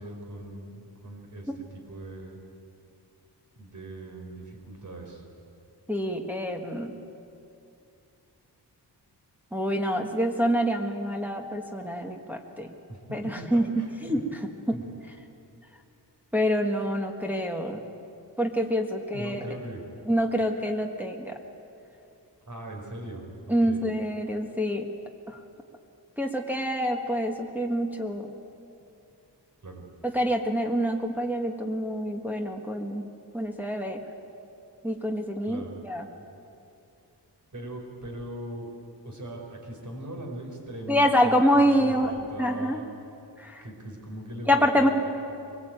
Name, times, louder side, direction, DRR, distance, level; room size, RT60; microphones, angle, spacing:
voice 1, 0.0-2.4 3.6-5.2 12.9-14.2 14.7-14.8 19.1-19.9 22.5-23.8 29.6-29.8 35.4-35.7 37.5-38.7 39.0-42.8 43.6-44.9, right 1 dB, 45° right, 1 dB, 4.6 m, -40 dB
voice 2, 5.9-6.9 9.5-12.7 13.1-14.2 14.7-14.8 16.3-17.8 18.4-19.4 20.1-21.4 23.5-24.9 25.3-25.4 26.2-28.3 30.1-33.0 33.3-34.0 34.8-36.1 40.9-42.1 42.4-42.8 43.4-43.6 44.5-44.9, equal, 5° right, 1 dB, 1.5 m, -26 dB
23.5 x 20.5 x 9.0 m, 2.7 s
wide cardioid pair, 160°, 42 cm